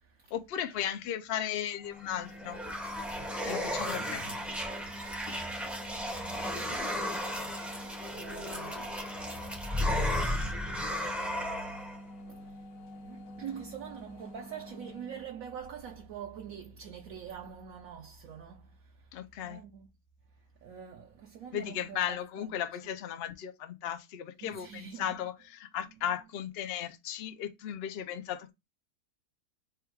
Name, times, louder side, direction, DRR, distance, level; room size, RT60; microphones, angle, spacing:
voice 1, 0.3-2.6 3.5-4.3 19.1-19.6 21.5-28.5, left 10 dB, 80° left, 0.5 m, -36 dB
sound 1, 1.7-15.3, left 1 dB, 65° left, 1.1 m, -48 dB
sound 2, 2.0-12.0, equal, ahead, 0.4 m, -34 dB
voice 2, 3.8-4.5 5.7-7.5 7.8-9.2 12.3-12.5 13.0-18.7 19.4-19.9 20.6-22.5 24.4-25.2, right 8 dB, 70° right, 0.9 m, -45 dB
3.5 x 2.3 x 4.5 m
omnidirectional pair, 1.7 m